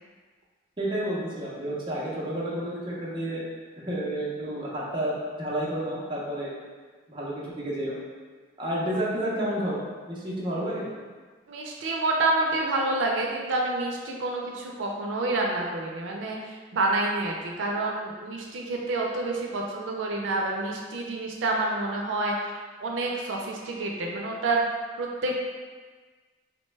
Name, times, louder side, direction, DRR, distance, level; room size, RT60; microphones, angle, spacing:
voice 1, 0.8-3.4 3.8-5.1 5.4-6.5 7.1-8.0 8.6-9.8 10.1-10.9, right 1 dB, 25° right, -6 dB, 0.5 m, -30 dB
voice 2, 11.5-16.4 16.7-22.5 22.8-24.6 25.0-25.3, right 2 dB, 90° right, -1 dB, 0.4 m, -28 dB
2.9 x 2.1 x 3.2 m, 1.5 s
head